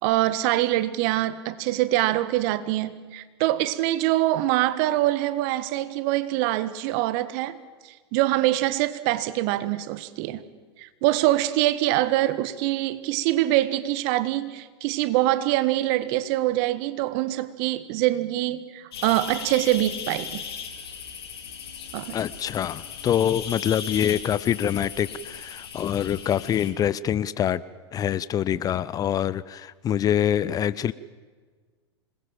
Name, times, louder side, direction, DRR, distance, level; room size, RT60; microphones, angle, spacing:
voice 1, 0.0-7.6 8.1-10.4 10.8-20.4 21.9-22.2, right 15 dB, 45° right, 1.6 m, -24 dB
sound 1, 18.9-26.7, left 7 dB, 65° left, 3.9 m, -37 dB
voice 2, 22.1-27.6 27.9-30.9, left 10 dB, 25° left, 0.7 m, -25 dB
26.5 x 21.0 x 7.5 m
figure-of-eight pair, 95°, 14 cm